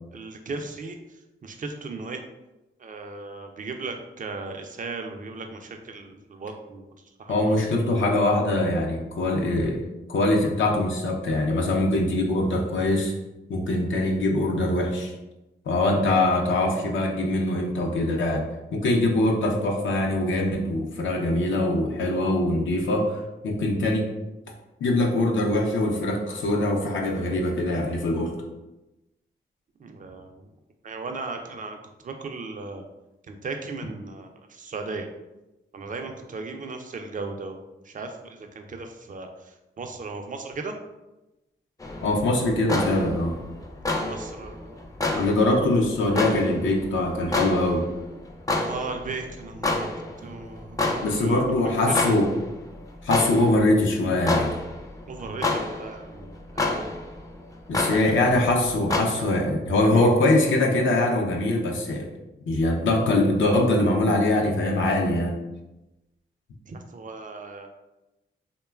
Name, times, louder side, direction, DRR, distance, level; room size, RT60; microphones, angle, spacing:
voice 1, 0.1-2.2 2.8-7.7 29.8-30.5 30.8-31.8 32.0-32.8 33.3-35.1 35.7-37.6 37.8-40.8 43.9-44.9 48.6-49.9 50.2-52.1 55.1-56.9 57.7-58.2 59.1-59.2 59.8-60.2 66.7-67.7, right 3 dB, 40° right, 4 dB, 0.4 m, -37 dB
voice 2, 7.3-9.8 10.1-13.1 13.5-15.1 15.7-24.1 24.8-28.4 42.0-43.4 45.2-47.9 51.0-52.3 53.0-54.5 57.7-62.1 62.5-65.4, left 1 dB, 70° left, 1 dB, 0.5 m, -23 dB
sound 1, 41.8-59.0, left 2 dB, 15° left, 0.4 m, -30 dB
2.9 x 2.2 x 2.2 m, 0.99 s
cardioid pair, 45°, 20 cm